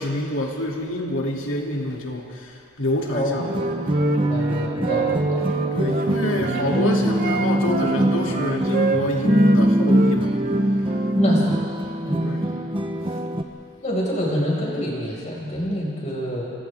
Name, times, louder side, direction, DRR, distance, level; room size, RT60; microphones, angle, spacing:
voice 1, 0.0-2.5 2.8-3.6 5.7-10.3 12.2-12.5, left 1 dB, 65° left, -1 dB, 2.9 m, -26 dB
Wind instrument woodwind instrument, 3.0-6.7 7.1-9.6 9.9-11.2, right 4 dB, 45° right, 1.1 m, -29 dB
voice 2, 3.1-3.5 4.1-5.6 6.6-6.8 11.2-11.6 12.0-12.3 13.8-16.5, equal, 35° left, -4 dB, 5.7 m, -27 dB
sound 1, 3.4-13.4, right 1 dB, 25° right, 0.9 m, -22 dB
29.5 x 27.0 x 3.7 m, 2.4 s
head